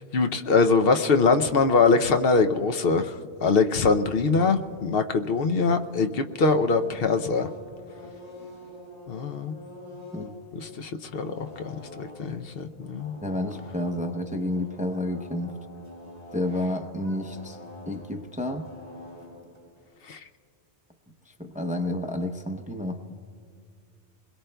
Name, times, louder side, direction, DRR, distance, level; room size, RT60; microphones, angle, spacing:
voice 1, 0.0-3.1 3.4-7.5 9.1-9.5 10.6-13.2 20.1-20.2, left 4 dB, 65° left, 6 dB, 0.8 m, -23 dB
sound 1, 5.7-19.8, left 2 dB, 80° left, 5.7 m, -46 dB
voice 2, 13.2-15.6 16.3-17.6 17.9-18.7 21.3-23.0, left 1 dB, 10° right, 3 dB, 0.5 m, -30 dB
28.5 x 21.5 x 2.2 m, 2.2 s
omnidirectional pair, 1.1 m